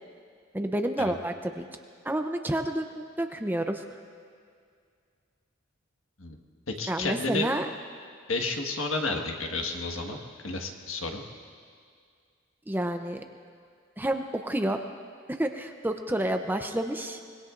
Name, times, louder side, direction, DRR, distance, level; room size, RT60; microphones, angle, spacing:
voice 1, 0.5-1.6 2.0-3.8 6.9-7.7 12.7-13.2 14.0-14.8 15.3-17.2, right 1 dB, 10° right, 5 dB, 0.6 m, -29 dB
voice 2, 6.8-7.5 8.3-11.2, left 3 dB, 75° left, 3 dB, 1.5 m, -31 dB
25.0 x 21.0 x 2.5 m, 2.2 s
head